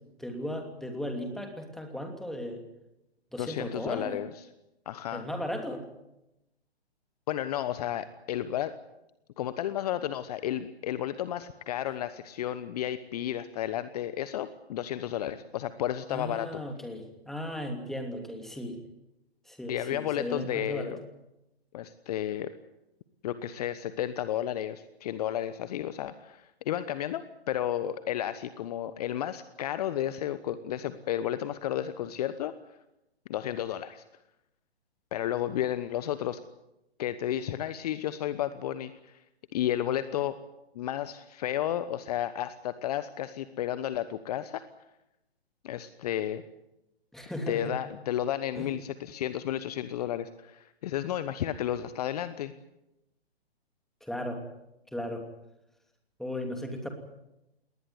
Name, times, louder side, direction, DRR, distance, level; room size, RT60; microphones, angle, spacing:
voice 1, 0.2-2.6 3.3-4.2 5.1-5.8 16.1-18.8 19.5-20.9 47.1-47.8 48.6-48.7 54.0-54.4 54.9-55.3 56.2-56.9, left 1 dB, ahead, 4 dB, 2.9 m, -36 dB
voice 2, 3.4-4.3 4.8-5.3 7.3-8.7 9.4-16.6 19.7-21.0 21.7-22.5 23.2-32.5 33.3-34.0 35.1-36.4 37.0-39.2 39.5-40.4 40.7-44.6 45.6-46.4 47.5-52.5, left 11 dB, 35° left, 13 dB, 1.1 m, -32 dB
20.5 x 19.5 x 9.6 m, 0.91 s
figure-of-eight pair, 130°, 32 cm